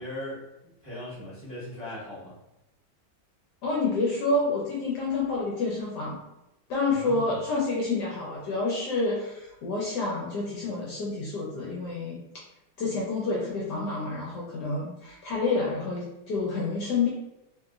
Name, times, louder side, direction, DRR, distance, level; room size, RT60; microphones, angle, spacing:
voice 1, 0.0-2.3 6.9-7.4, left 1 dB, 20° right, -10 dB, 0.8 m, -39 dB
voice 2, 3.6-6.2 6.7-12.2 12.8-17.1, left 3 dB, 70° left, -4 dB, 1.1 m, -28 dB
2.8 x 2.7 x 2.3 m, 0.91 s
omnidirectional pair, 2.2 m